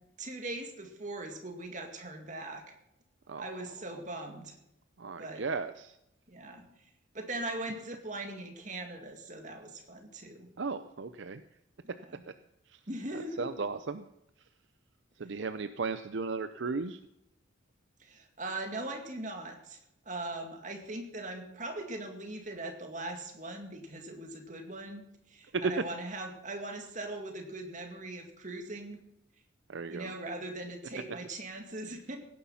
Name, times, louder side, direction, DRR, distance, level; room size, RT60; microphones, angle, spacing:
voice 1, 0.2-2.7 3.4-4.5 5.2-5.4 6.3-6.9 7.1-10.5 12.1-12.2 12.9-13.5 18.0-19.8 20.1-25.0 25.3-29.0 29.9-32.2, right 2 dB, 40° right, 3 dB, 2.2 m, -40 dB
voice 2, 5.0-6.0 10.6-11.4 12.7-12.8 13.1-14.0 15.2-17.0 25.5-25.8 29.7-30.1, right 4 dB, 65° right, 10 dB, 0.6 m, -35 dB
17.0 x 10.0 x 5.7 m, 0.84 s
head